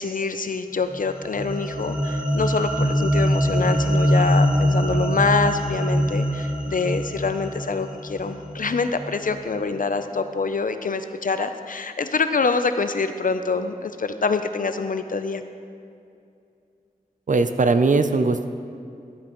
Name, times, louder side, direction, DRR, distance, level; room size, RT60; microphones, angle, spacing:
voice 1, 0.0-15.4, left 4 dB, 65° left, 9 dB, 0.5 m, -25 dB
sound 1, 0.9-9.4, equal, 5° right, 1.4 m, -23 dB
voice 2, 17.3-18.4, right 3 dB, 60° right, 9 dB, 0.5 m, -19 dB
12.5 x 8.4 x 3.1 m, 2.4 s
wide cardioid pair, 65°, 15 cm